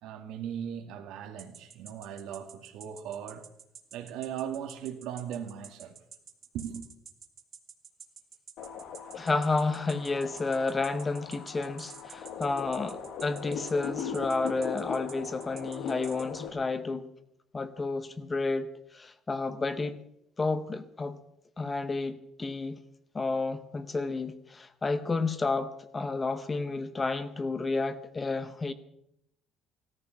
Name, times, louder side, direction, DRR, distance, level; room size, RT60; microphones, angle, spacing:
voice 1, 0.0-3.5 3.9-6.0 6.5-6.9, right 9 dB, 75° right, 2.2 m, -38 dB
sound 1, 1.4-16.4, right 6 dB, 30° right, 1.6 m, -49 dB
sound 2, 8.6-16.5, left 6 dB, 60° left, 1.6 m, -39 dB
voice 2, 9.1-17.1 17.5-20.0 20.4-21.2 21.6-22.8 23.1-28.7, left 3 dB, 15° left, 0.7 m, -31 dB
17.0 x 14.0 x 5.9 m
cardioid pair, 175°, 0 cm